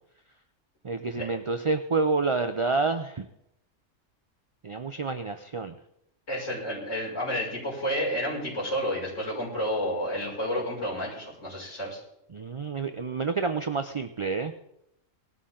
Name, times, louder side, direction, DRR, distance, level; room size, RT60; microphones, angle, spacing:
voice 1, 0.8-3.2 4.6-5.8 12.3-14.5, right 4 dB, 40° right, 8 dB, 0.4 m, -28 dB
voice 2, 6.3-12.0, equal, 70° left, -6 dB, 6.6 m, -30 dB
19.0 x 13.0 x 3.8 m, 0.78 s
omnidirectional pair, 1.3 m